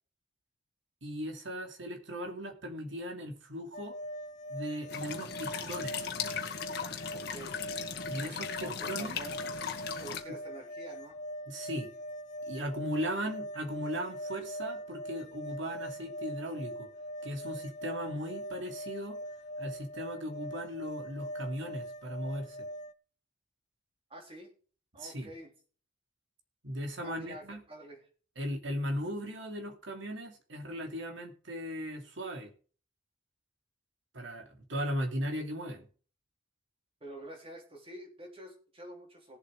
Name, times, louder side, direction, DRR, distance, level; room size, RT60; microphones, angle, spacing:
voice 1, 1.0-4.0 4.5-6.1 8.1-9.2 10.3-10.4 11.5-11.9 12.5-16.9 17.2-19.2 19.6-22.6 25.0-25.3 26.6-27.6 28.4-32.5 34.1-35.9, equal, 60° right, 3 dB, 2.8 m, -37 dB
sound 1, 3.7-22.9, equal, 35° left, 0.6 m, -42 dB
sound 2, 4.9-10.2, left 7 dB, 50° left, 1.8 m, -38 dB
voice 2, 7.1-7.6 8.6-9.4 10.0-11.2 24.1-24.5 24.9-25.5 27.0-28.0 37.0-39.4, right 1 dB, 25° right, 2 dB, 3.6 m, -47 dB
18.0 x 7.8 x 3.7 m, 0.41 s
head